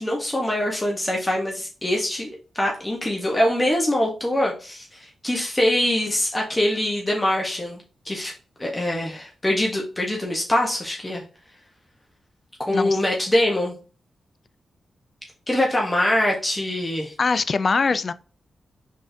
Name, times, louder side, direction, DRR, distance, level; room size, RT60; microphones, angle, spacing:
voice 1, 0.0-8.3 8.6-11.2 12.7-13.7 15.5-17.1, left 1 dB, 15° left, 1.0 m, -23 dB
voice 2, 12.7-13.0 17.2-18.1, left 4 dB, 45° left, 0.3 m, -22 dB
5.2 x 3.6 x 2.7 m
wide cardioid pair, 100°, 0 cm